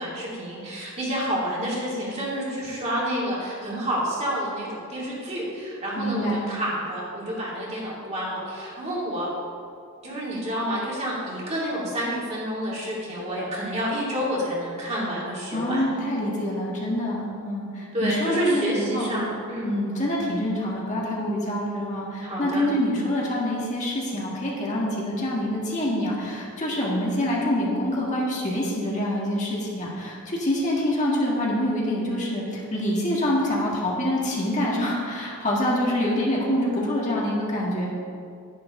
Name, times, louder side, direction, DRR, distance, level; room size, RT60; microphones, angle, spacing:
voice 1, 0.0-9.3 10.0-15.8 17.9-19.7 22.2-22.7, equal, 30° right, -6 dB, 2.6 m, -29 dB
voice 2, 6.0-6.4 15.5-19.1 19.6-37.9, left 1 dB, 35° left, -4 dB, 1.8 m, -26 dB
11.5 x 10.5 x 3.7 m, 2.3 s
head